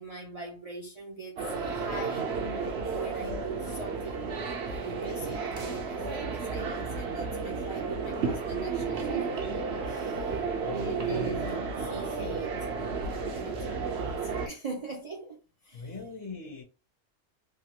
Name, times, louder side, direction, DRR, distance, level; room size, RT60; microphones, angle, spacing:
voice 1, 0.0-2.3 2.9-9.4 9.9-10.3 10.6-11.4 11.8-12.6 13.3-15.9, right 3 dB, 40° right, 0.6 m, -41 dB
sound 1, 1.4-14.5, right 4 dB, 60° right, 0.9 m, -32 dB
voice 2, 10.3-11.4 15.7-16.6, left 4 dB, 55° left, 1.2 m, -41 dB
3.2 x 2.4 x 2.9 m
omnidirectional pair, 1.3 m